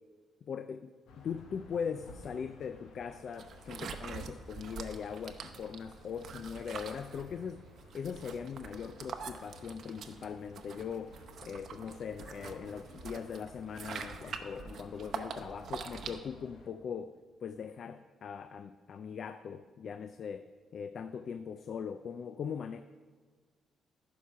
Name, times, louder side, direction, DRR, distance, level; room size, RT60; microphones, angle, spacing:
voice 1, 0.4-7.6 7.9-22.8, left 7 dB, 55° left, 10 dB, 0.3 m, -40 dB
sound 1, 1.1-16.7, left 2 dB, 80° left, 1.1 m, -56 dB
sound 2, 3.3-16.2, right 6 dB, 65° right, 0.7 m, -45 dB
11.0 x 4.7 x 5.7 m, 1.5 s
cardioid pair, 90°, 0 cm